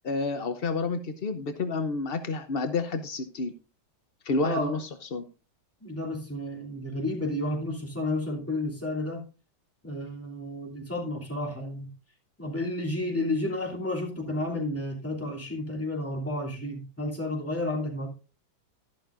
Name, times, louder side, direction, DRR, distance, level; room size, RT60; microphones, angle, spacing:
voice 1, 0.0-3.5 4.2-5.2, left 3 dB, 80° left, 8 dB, 0.5 m, -30 dB
voice 2, 4.4-4.8 5.8-9.3 9.8-11.9 12.4-18.1, left 1 dB, 5° left, -2 dB, 2.7 m, -31 dB
12.0 x 11.5 x 2.5 m, 0.31 s
omnidirectional pair, 2.2 m